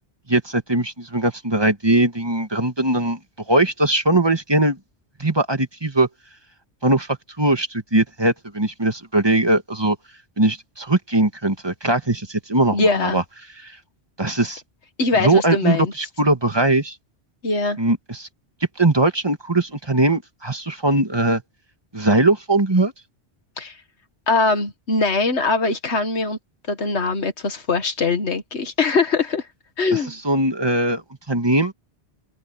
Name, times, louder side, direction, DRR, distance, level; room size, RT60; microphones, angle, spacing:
voice 1, 0.3-3.2 3.5-4.8 5.2-6.1 6.8-10.0 10.4-13.2 13.6-13.8 14.2-14.6 15.2-17.0 17.8-18.3 18.8-21.4 21.9-22.9 29.9-30.0 30.2-31.0 31.3-31.7, right 2 dB, 25° right, 2.1 m, -20 dB
voice 2, 12.7-13.2 15.0-15.9 17.4-17.8 23.6-23.8 24.3-26.4 26.7-29.5 29.8-30.2, left 3 dB, 85° left, 1.9 m, -21 dB
open air
omnidirectional pair, 1.1 m